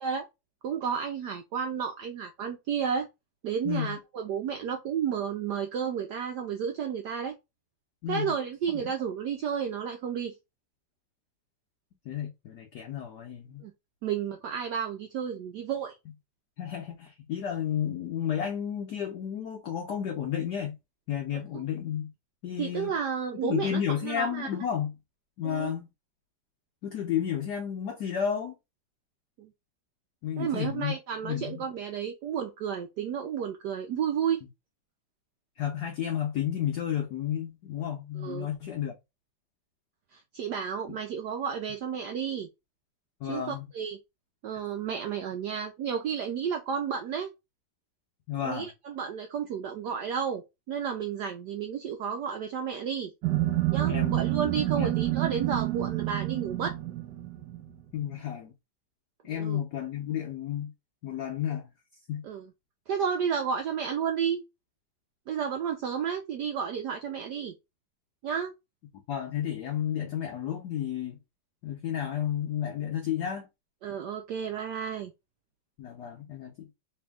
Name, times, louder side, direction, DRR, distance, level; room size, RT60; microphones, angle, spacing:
voice 1, 0.6-3.1 3.4-7.4 8.1-10.3 13.6-13.7 14.0-15.9 21.3-21.6 22.6-24.5 25.4-25.7 29.4-29.5 30.4-34.4 38.2-38.5 40.1-42.5 43.3-44.0 44.4-47.3 48.4-53.1 53.7-56.7 59.3-59.6 62.2-62.4 62.9-64.4 65.3-67.5 68.2-68.5 73.8-75.1, right 7 dB, 90° right, 0.9 m, -32 dB
voice 2, 3.6-4.0 8.0-8.3 8.7-8.8 12.1-13.6 16.6-20.8 21.1-22.1 22.4-23.0 23.4-24.9 25.4-25.9 26.8-28.5 30.2-31.0 31.2-31.7 35.6-38.9 40.9-41.0 43.2-43.6 48.3-48.7 53.9-54.3 54.7-54.9 57.9-58.5 59.2-60.7 61.0-61.7 62.1-62.2 69.1-71.2 71.6-73.5 75.8-76.7, left 9 dB, 70° left, 1.0 m, -32 dB
sound 1, 53.2-57.8, right 15 dB, 65° right, 1.2 m, -28 dB
3.5 x 2.7 x 3.4 m
omnidirectional pair, 2.4 m